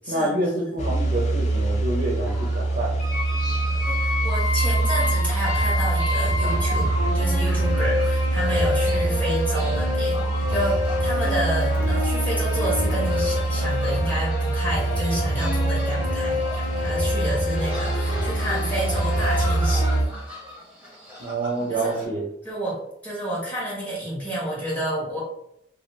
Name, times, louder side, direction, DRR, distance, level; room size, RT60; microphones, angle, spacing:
voice 1, 0.1-2.9 21.2-22.2, right 1 dB, 55° right, -2 dB, 0.5 m, -27 dB
sound 1, 0.8-20.1, right 2 dB, 40° left, 0.4 m, -24 dB
sound 2, 2.2-22.1, left 1 dB, 10° right, 0.9 m, -41 dB
sound 3, 3.0-20.0, left 2 dB, 55° left, 1.4 m, -28 dB
voice 2, 3.8-20.1 21.7-21.9 22.4-22.8 23.0-25.2, equal, 10° left, -7 dB, 1.1 m, -30 dB
2.4 x 2.3 x 3.1 m, 0.78 s
head